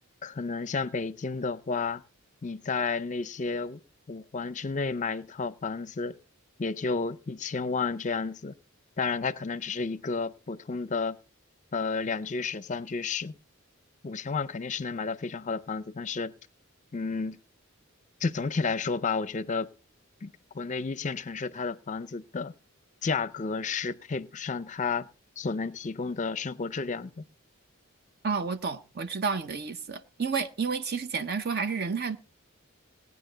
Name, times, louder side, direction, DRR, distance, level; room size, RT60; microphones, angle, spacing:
voice 1, 0.2-2.0 2.4-3.8 4.1-6.2 6.6-8.5 9.0-11.2 11.7-13.3 14.0-16.3 16.9-17.4 18.2-19.7 20.2-22.5 23.0-25.1 25.4-27.2, left 4 dB, 35° left, 0.5 m, -31 dB
voice 2, 28.2-32.2, right 5 dB, 50° right, 0.7 m, -30 dB
18.5 x 9.5 x 3.9 m
head